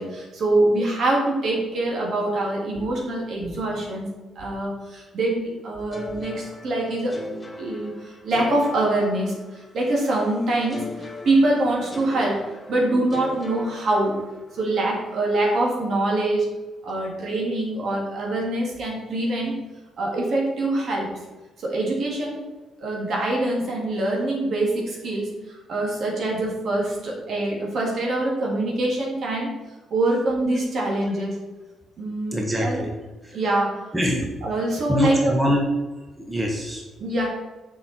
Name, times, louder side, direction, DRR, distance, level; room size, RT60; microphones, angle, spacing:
voice 1, 0.0-4.1 4.4-7.2 7.6-14.2 14.5-16.5 16.8-19.6 20.0-21.1 21.6-22.4 22.8-29.5 29.9-31.4 32.0-32.8 33.3-33.8 34.4-35.3 37.0-37.3, right 2 dB, 60° right, -2 dB, 2.6 m, -24 dB
sound 1, 5.9-9.8 10.7-14.6, left 2 dB, 15° left, 1.5 m, -38 dB
voice 2, 32.3-32.9 33.2-33.3 33.9-34.3 34.9-35.7 36.2-36.8, equal, 15° right, 0 dB, 1.3 m, -23 dB
6.7 x 5.8 x 4.5 m, 1.1 s
cardioid pair, 90°, 0 cm